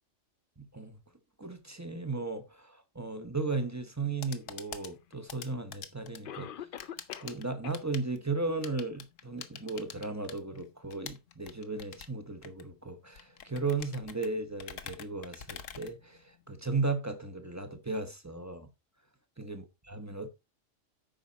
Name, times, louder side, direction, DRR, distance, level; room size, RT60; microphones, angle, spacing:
voice 1, 0.6-1.0 1.4-6.8 7.2-18.7 19.4-20.3, right 3 dB, 15° right, 1.0 m, -36 dB
sound 1, 3.9-16.6, left 8 dB, 90° left, 1.3 m, -48 dB
Cough, 5.1-5.2 6.2-7.4 7.6-7.8 8.3-8.4 9.0-9.1, left 9 dB, 55° left, 0.7 m, -43 dB
9.0 x 5.9 x 4.1 m
omnidirectional pair, 1.3 m